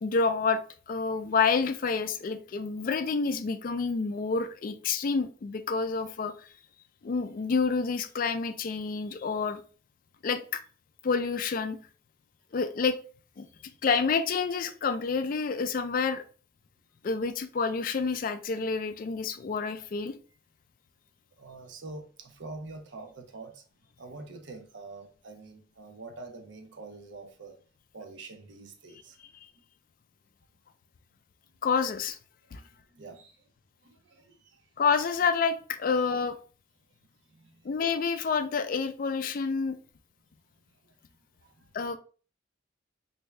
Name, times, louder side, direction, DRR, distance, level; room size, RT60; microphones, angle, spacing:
voice 1, 0.0-0.6 0.9-6.5 7.0-9.6 10.2-10.6 11.0-11.8 12.5-13.0 13.4-13.5 13.8-16.2 17.0-20.1 31.6-32.2 32.5-32.6 34.8-36.4 37.6-39.8 41.7-42.0, left 5 dB, 45° left, 0.3 m, -28 dB
voice 2, 21.4-23.6 24.0-27.6 27.9-29.3 29.6-29.7 32.5-33.5 33.8-34.8 37.3-37.7 40.8-41.0 41.4-41.7, right 3 dB, 70° right, 0.7 m, -46 dB
3.3 x 2.7 x 3.2 m
head